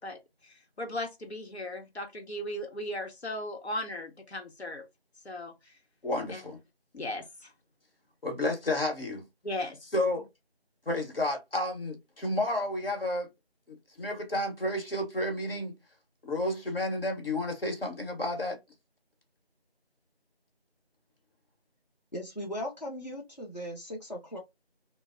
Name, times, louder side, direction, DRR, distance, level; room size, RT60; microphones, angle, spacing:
voice 1, 0.0-4.9 5.2-5.7 6.3-6.4 6.9-7.5 9.4-9.8, left 1 dB, 85° left, 0.9 m, -37 dB
voice 2, 6.0-6.6 8.2-9.3 9.9-10.3 10.9-13.3 13.7-15.7 16.2-18.6, left 1 dB, 60° left, 1.1 m, -31 dB
voice 3, 22.1-24.4, equal, 40° left, 0.7 m, -38 dB
3.0 x 2.0 x 2.5 m
figure-of-eight pair, 180°, 32 cm